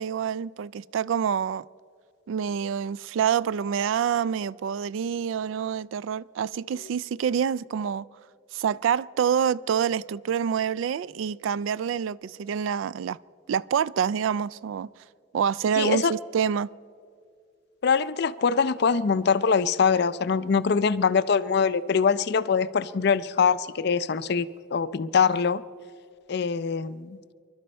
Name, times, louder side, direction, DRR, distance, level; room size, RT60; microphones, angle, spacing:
voice 1, 0.0-1.6 2.3-8.1 8.5-13.2 13.5-14.9 15.3-16.7, right 7 dB, 75° right, 0.3 m, -27 dB
voice 2, 15.8-16.1 17.8-25.6 26.3-27.2, left 6 dB, 55° left, 0.4 m, -23 dB
26.0 x 12.0 x 4.3 m
head